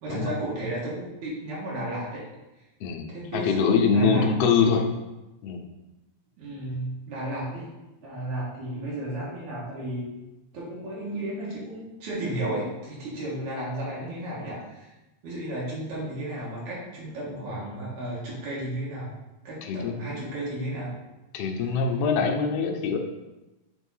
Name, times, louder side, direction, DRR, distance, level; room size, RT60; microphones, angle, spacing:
voice 1, 0.0-2.2 3.1-3.6 3.9-4.3 6.4-7.7 8.0-10.1 10.5-14.9 15.2-19.1 19.4-20.9, right 1 dB, 70° right, -6 dB, 2.8 m, -33 dB
voice 2, 2.8-4.8 5.4-5.6 19.6-20.0 21.3-23.0, left 5 dB, 70° left, 2 dB, 1.6 m, -23 dB
6.8 x 3.6 x 5.5 m, 1.0 s
omnidirectional pair, 3.5 m